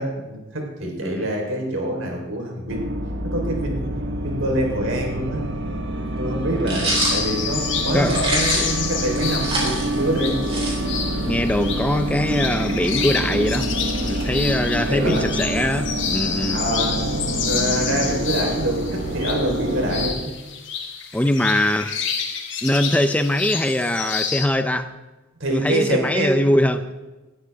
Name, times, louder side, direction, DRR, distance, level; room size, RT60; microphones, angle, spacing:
voice 1, 0.0-2.9 3.2-3.9 4.2-5.5 6.2-10.4 14.9-15.3 16.5-20.3 25.4-26.4, right 1 dB, 80° right, 0 dB, 3.8 m, -25 dB
sound 1, 2.7-20.1, right 1 dB, 65° right, 1.2 m, -27 dB
voice 2, 6.5-6.9 7.9-8.2 8.5-8.8 11.3-16.6 21.1-21.9 22.6-24.9 25.5-26.8, left 1 dB, 5° left, 9 dB, 0.5 m, -22 dB
sound 2, 6.7-7.2 8.0-8.8 9.2-11.1, right 2 dB, 30° right, 4.4 m, -25 dB
sound 3, 6.9-24.5, left 6 dB, 65° left, 2.3 m, -29 dB
19.5 x 13.0 x 3.5 m, 1.2 s
head